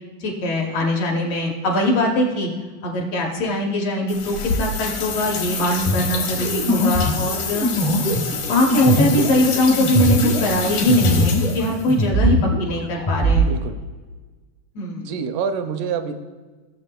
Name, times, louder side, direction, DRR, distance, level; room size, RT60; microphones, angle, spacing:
voice 1, 0.2-2.5 2.8-7.7 8.5-13.4 14.7-15.1, left 1 dB, 70° left, 0 dB, 1.7 m, -21 dB
sound 1, 4.1-11.9, left 5 dB, 85° left, 2.7 m, -28 dB
sound 2, 5.8-11.6 11.9-13.5, equal, 40° left, 0.4 m, -21 dB
voice 2, 13.4-13.8 15.0-16.1, right 6 dB, 85° right, 8 dB, 2.1 m, -27 dB
15.5 x 7.2 x 2.2 m, 1.3 s
omnidirectional pair, 3.6 m